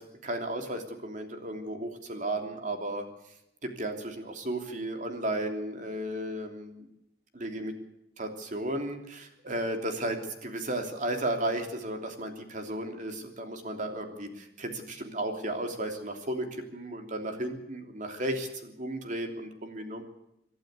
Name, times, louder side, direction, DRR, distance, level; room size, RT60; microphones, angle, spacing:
voice 1, 0.0-3.1 3.6-6.9 7.3-7.7 8.2-20.0, right 1 dB, 45° right, 5 dB, 3.2 m, -34 dB
27.0 x 12.0 x 8.2 m, 0.82 s
head